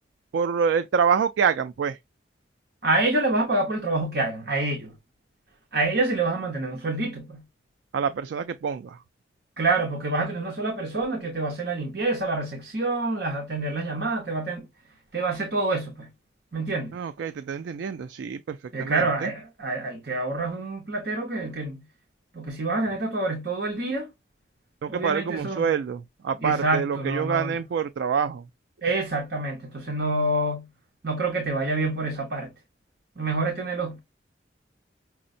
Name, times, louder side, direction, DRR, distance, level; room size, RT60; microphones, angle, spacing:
voice 1, 0.3-2.0 7.9-9.0 16.9-19.3 24.8-28.5, right 6 dB, 75° right, 0.3 m, -26 dB
voice 2, 2.8-4.9 5.7-7.4 9.6-14.7 15.1-16.1 16.5-16.9 18.7-21.8 22.3-24.1 24.9-25.7 26.4-27.5 28.8-30.7 31.0-32.5 33.2-34.0, right 2 dB, 55° right, 0.9 m, -27 dB
5.8 x 2.1 x 2.6 m
head